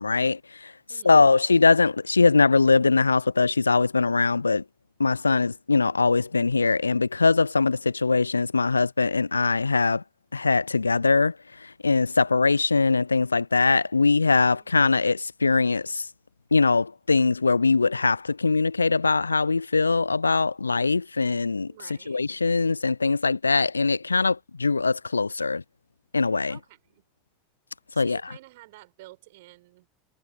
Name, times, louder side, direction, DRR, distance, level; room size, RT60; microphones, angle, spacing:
voice 1, 0.0-0.7 1.0-4.6 5.0-10.0 10.3-16.1 16.5-21.7 22.1-25.6 26.1-26.6 28.0-28.2, left 4 dB, 85° left, 0.4 m, -22 dB
voice 2, 0.9-1.3 14.4-14.8 21.7-22.2 26.5-27.0 27.9-29.9, right 19 dB, 60° right, 7.0 m, -50 dB
figure-of-eight pair, 75°, 0 cm